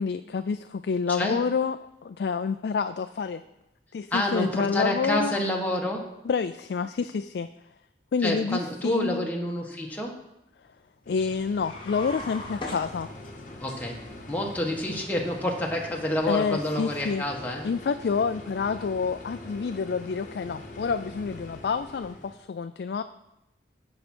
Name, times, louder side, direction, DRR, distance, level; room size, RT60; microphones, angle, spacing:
voice 1, 0.0-3.4 3.9-5.4 6.3-7.5 8.1-9.3 11.1-13.1 16.3-17.2 17.6-23.0, left 5 dB, 65° left, 9 dB, 0.3 m, -28 dB
voice 2, 1.1-1.4 4.1-6.0 8.2-10.2 13.6-14.0 14.3-17.7, left 1 dB, 10° left, -1 dB, 1.3 m, -28 dB
sound 1, 11.0-22.4, left 2 dB, 45° left, 1.0 m, -43 dB
sound 2, 11.5-13.6, left 2 dB, 30° left, 1.3 m, -39 dB
14.0 x 5.8 x 4.3 m, 0.88 s
head